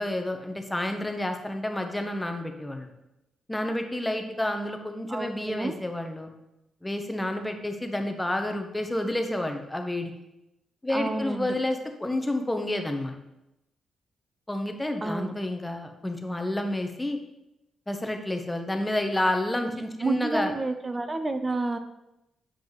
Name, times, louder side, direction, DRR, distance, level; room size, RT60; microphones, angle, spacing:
voice 1, 0.0-2.9 3.5-6.3 6.8-10.1 10.8-13.2 14.5-17.2 17.9-20.5, left 1 dB, 10° left, 5 dB, 0.8 m, -29 dB
voice 2, 5.1-5.7 10.9-11.6 15.0-15.3 20.0-21.8, right 2 dB, 25° right, 8 dB, 0.5 m, -29 dB
7.6 x 5.1 x 3.0 m, 0.89 s
cardioid pair, 95°, 0 cm